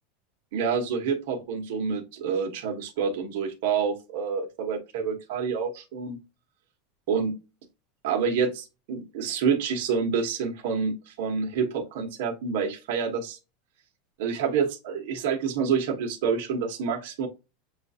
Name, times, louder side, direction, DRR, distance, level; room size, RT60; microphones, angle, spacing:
voice 1, 0.5-6.2 7.1-7.3 8.0-13.4 14.2-17.3, right 6 dB, 70° right, 2 dB, 1.0 m, -28 dB
7.2 x 2.4 x 2.7 m, 0.28 s
supercardioid pair, 145°, 0 cm